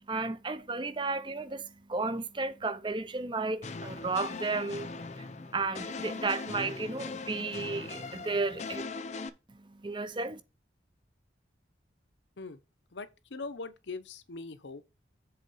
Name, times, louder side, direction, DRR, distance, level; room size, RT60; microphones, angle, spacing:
voice 1, 0.1-4.9 5.2-8.8 9.7-10.4, right 3 dB, 25° right, 0.5 m, -33 dB
sound 1, 3.6-9.3, left 4 dB, 40° left, 0.6 m, -40 dB
voice 2, 12.9-14.8, left 3 dB, 75° left, 0.8 m, -41 dB
7.6 x 3.9 x 5.5 m
head